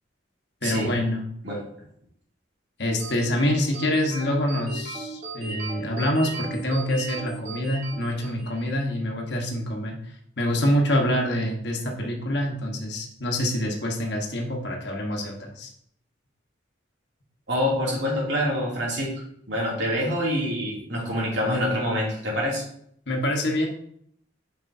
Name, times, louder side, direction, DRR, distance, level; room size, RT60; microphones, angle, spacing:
voice 1, 0.6-1.2 2.8-15.7 23.1-23.7, left 1 dB, 60° left, 1 dB, 1.3 m, -26 dB
sound 1, 3.0-8.7, right 3 dB, 35° right, 1.6 m, -37 dB
voice 2, 17.5-19.1 19.5-22.6, equal, 70° right, -4 dB, 2.7 m, -26 dB
7.4 x 5.4 x 2.7 m, 0.68 s
head